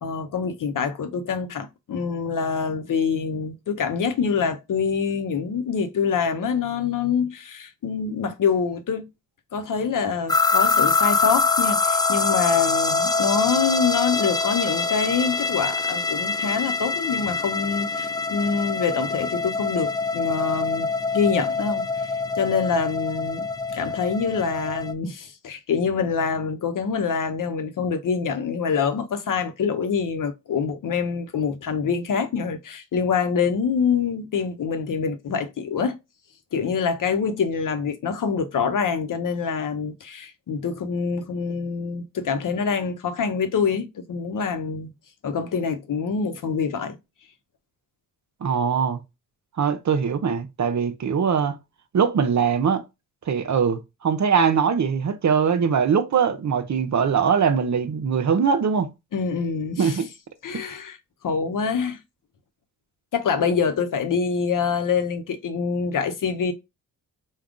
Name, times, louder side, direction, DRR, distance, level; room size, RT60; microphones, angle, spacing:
voice 1, 0.0-9.0 9.5-20.9 21.1-21.9 22.3-36.0 36.5-44.9 45.2-47.0 59.1-60.0 60.4-61.0 61.2-62.0 63.1-66.5, left 6 dB, 55° left, 0.8 m, -25 dB
sound 1, 10.3-24.9, left 4 dB, 10° left, 0.4 m, -24 dB
voice 2, 48.4-49.0 49.6-51.6 51.9-52.8 53.3-58.9 59.8-60.1 60.5-60.6, right 6 dB, 50° right, 0.7 m, -22 dB
3.5 x 2.3 x 3.7 m
supercardioid pair, 55°, 37 cm